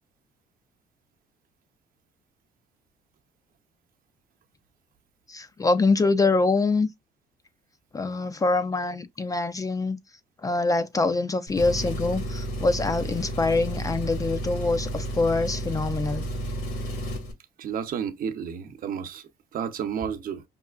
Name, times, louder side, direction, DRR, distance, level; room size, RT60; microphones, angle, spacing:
voice 1, 5.3-6.9 7.9-10.0 10.4-16.3, left 3 dB, 20° left, 0.4 m, -24 dB
Engine, 11.5-17.3, right 1 dB, 80° left, 1.6 m, -32 dB
voice 2, 17.6-20.4, right 8 dB, 55° right, 0.8 m, -32 dB
5.4 x 2.3 x 2.3 m
cardioid pair, 110°, 17 cm